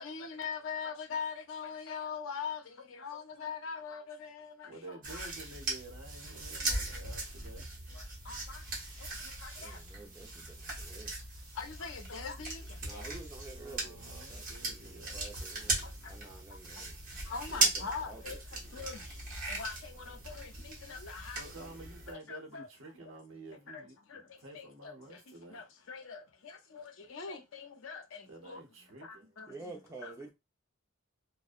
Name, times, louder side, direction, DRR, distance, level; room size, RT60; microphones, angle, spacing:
voice 1, 0.0-2.6 2.9-5.2 8.3-8.6 9.4-9.8 11.6-12.6 12.9-13.1 17.3-18.4 18.7-19.0 19.5-21.4 22.1-22.7 23.7-23.8 24.1-24.2 24.5-24.9 25.5-26.2 26.7-28.0 28.5-28.6 29.4-29.5 30.0-30.1, left 5 dB, 75° left, 0.6 m, -41 dB
voice 2, 4.7-7.7 13.6-15.2 21.3-25.6 28.3-29.3, right 2 dB, 70° right, 0.9 m, -50 dB
sound 1, 5.0-22.1, right 2 dB, 40° right, 1.0 m, -38 dB
voice 3, 9.6-11.2 12.8-17.0 17.5-18.4 29.5-30.3, right 3 dB, 15° right, 0.6 m, -50 dB
2.6 x 2.1 x 2.4 m
head